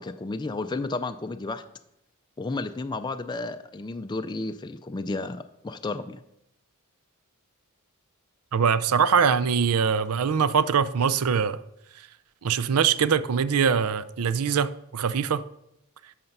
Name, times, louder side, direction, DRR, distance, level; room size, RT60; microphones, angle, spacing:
voice 1, 0.0-1.6 2.4-6.2, left 3 dB, 20° left, 0.4 m, -32 dB
voice 2, 8.5-11.6 12.4-15.4, right 6 dB, 80° right, 0.5 m, -23 dB
11.5 x 6.6 x 5.4 m
head